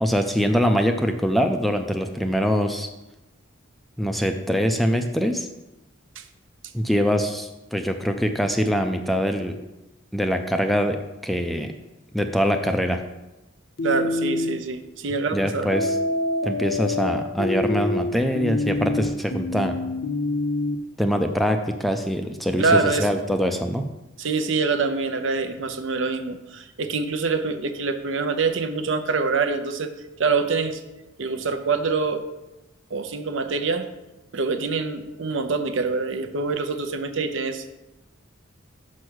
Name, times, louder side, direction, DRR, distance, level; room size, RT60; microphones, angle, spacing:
voice 1, 0.0-2.9 4.0-5.5 6.7-9.6 10.1-11.7 12.1-13.0 15.3-16.0 16.4-19.8 21.0-23.9, equal, ahead, 6 dB, 0.4 m, -23 dB
sound 1, 13.8-14.6 15.7-20.8, left 2 dB, 60° left, 0.7 m, -26 dB
voice 2, 13.8-15.7 22.6-23.2 24.2-29.9 30.2-30.8 31.2-32.2 32.9-33.9 34.3-37.7, right 4 dB, 65° right, 8 dB, 0.7 m, -25 dB
6.2 x 5.6 x 6.2 m, 1.0 s
head